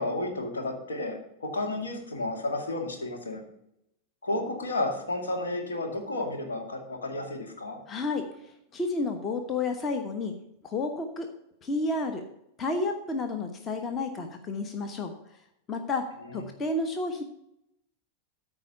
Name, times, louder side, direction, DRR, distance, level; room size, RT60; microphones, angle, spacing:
voice 1, 0.0-3.4 4.2-7.8, left 2 dB, 70° left, 3 dB, 2.1 m, -32 dB
voice 2, 7.9-8.3 8.7-10.3 10.6-11.3 11.6-12.2 12.6-15.1 15.7-17.2, left 3 dB, 25° left, 6 dB, 1.1 m, -31 dB
13.5 x 4.9 x 6.6 m, 0.80 s
figure-of-eight pair, 90°, 0 cm